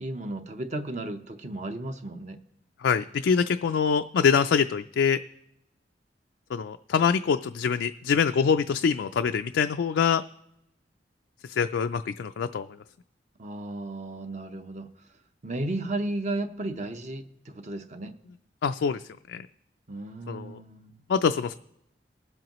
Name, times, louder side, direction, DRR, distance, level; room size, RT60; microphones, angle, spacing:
voice 1, 0.0-2.4 13.4-14.9 15.4-18.1 19.9-21.0, right 2 dB, 45° right, 7 dB, 0.8 m, -34 dB
voice 2, 2.8-5.2 6.5-10.2 11.5-12.7 18.6-19.0 19.3-19.4 20.3-20.6 21.1-21.5, left 6 dB, 90° left, 7 dB, 0.3 m, -24 dB
19.5 x 7.7 x 3.0 m, 0.84 s
head